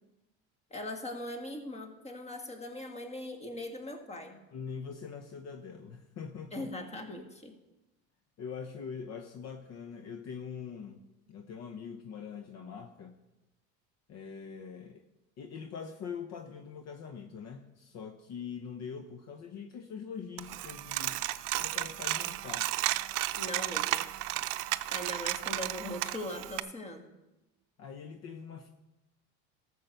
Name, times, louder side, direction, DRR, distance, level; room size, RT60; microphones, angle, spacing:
voice 1, 0.7-4.4 6.5-7.5 23.4-24.1 24.9-27.1, left 1 dB, 20° left, 4 dB, 1.9 m, -40 dB
voice 2, 4.5-6.7 8.4-11.0 11.3-13.2 14.1-15.0 15.4-21.2 21.6-22.8 27.8-28.7, left 6 dB, 50° left, 6 dB, 0.9 m, -43 dB
Coin (dropping), 20.4-26.6, right 17 dB, 70° right, 0.6 m, -33 dB
13.0 x 6.8 x 6.8 m, 0.99 s
supercardioid pair, 105°, 34 cm